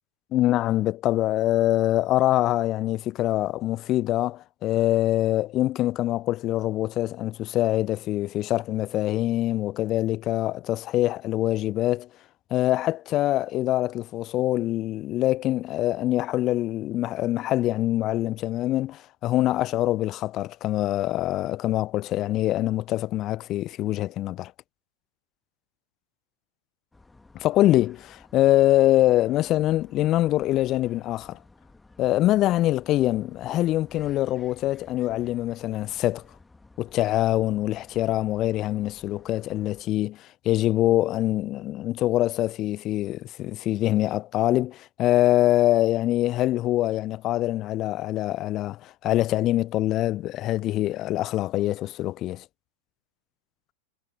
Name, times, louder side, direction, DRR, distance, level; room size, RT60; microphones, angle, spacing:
voice 1, 0.3-12.1 12.5-24.5 27.3-31.4 32.0-36.2 36.8-52.4, left 15 dB, 35° left, 0.7 m, -24 dB
sound 1, 26.9-39.8, left 3 dB, 10° left, 2.1 m, -54 dB
figure-of-eight pair, 90°, 0 cm